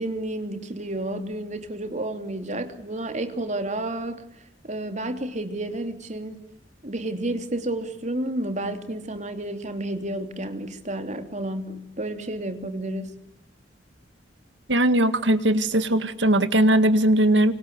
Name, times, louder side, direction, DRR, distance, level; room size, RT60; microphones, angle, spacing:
voice 1, 0.0-4.2 4.6-6.4 6.8-13.1, right 1 dB, 40° right, 8 dB, 3.0 m, -31 dB
voice 2, 14.7-17.5, right 1 dB, 75° right, 11 dB, 2.0 m, -19 dB
28.0 x 25.5 x 8.1 m, 0.74 s
head